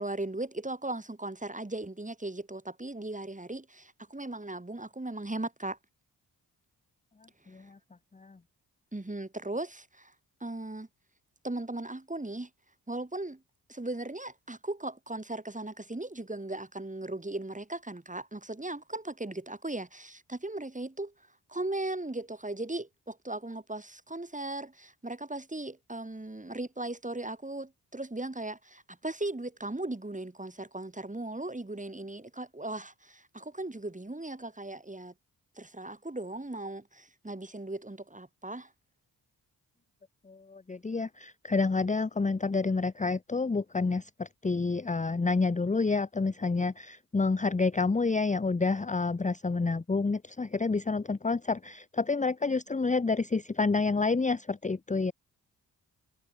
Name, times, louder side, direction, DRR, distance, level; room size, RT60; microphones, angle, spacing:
voice 1, 0.0-5.8 8.9-10.1 10.4-10.9 11.4-12.5 12.9-13.4 13.7-21.1 21.5-35.1 35.6-38.7, right 2 dB, 20° right, 6.5 m, -37 dB
voice 2, 40.3-55.1, left 4 dB, 20° left, 0.9 m, -29 dB
cardioid pair, 55°, 40 cm